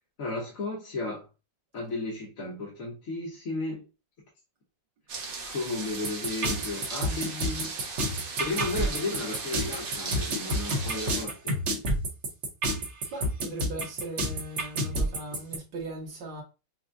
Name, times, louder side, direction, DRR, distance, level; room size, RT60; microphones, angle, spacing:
voice 1, 0.2-1.3 1.7-3.8 5.4-7.7 8.4-11.6, left 2 dB, 55° left, 1.3 m, -34 dB
sound 1, 5.1-11.2, right 4 dB, 70° right, 0.5 m, -37 dB
sound 2, 6.0-15.6, right 1 dB, 50° right, 1.0 m, -29 dB
voice 2, 13.1-16.4, right 1 dB, 90° right, 1.8 m, -39 dB
5.9 x 2.1 x 2.5 m
omnidirectional pair, 1.9 m